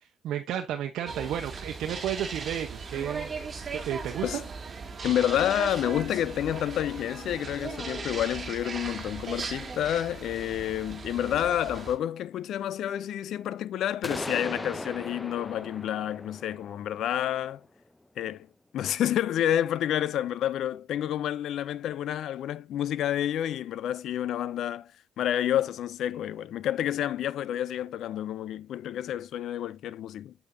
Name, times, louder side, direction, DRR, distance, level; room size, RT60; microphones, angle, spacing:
voice 1, 0.0-3.3 3.8-4.4, right 10 dB, 80° right, 1.0 m, -32 dB
sound 1, 1.1-11.9, right 5 dB, 35° right, 2.7 m, -38 dB
voice 2, 5.0-17.6 18.2-18.5 18.7-24.9 25.2-30.3, left 11 dB, 75° left, 0.6 m, -29 dB
sound 2, 14.0-17.8, left 1 dB, 10° left, 0.7 m, -39 dB
8.5 x 8.3 x 2.8 m
cardioid pair, 90°, 0 cm